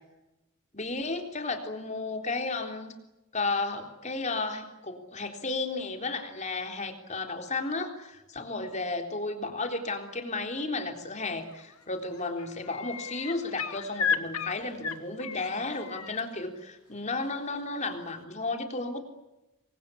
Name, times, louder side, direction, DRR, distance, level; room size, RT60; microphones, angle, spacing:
voice 1, 0.7-2.9 3.3-19.0, left 3 dB, 35° left, 5 dB, 3.8 m, -33 dB
sound 1, 11.5-11.8 12.1-16.2 17.8-17.9, left 6 dB, 90° left, 2.1 m, -34 dB
28.0 x 23.0 x 8.5 m, 0.96 s
head